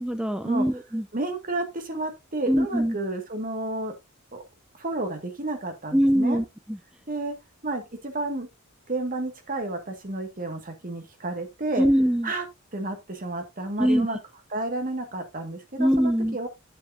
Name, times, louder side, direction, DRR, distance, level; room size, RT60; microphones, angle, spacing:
voice 1, 0.0-1.1 2.5-3.0 5.9-6.8 11.8-12.3 13.8-14.1 15.8-16.4, equal, 5° right, 8 dB, 0.5 m, -22 dB
voice 2, 1.1-4.0 4.3-4.4 4.8-6.4 7.1-7.3 7.6-8.5 8.9-11.9 12.2-12.4 12.7-14.2 14.5-16.5, right 2 dB, 40° right, 5 dB, 1.9 m, -31 dB
9.8 x 7.8 x 2.7 m, 0.21 s
head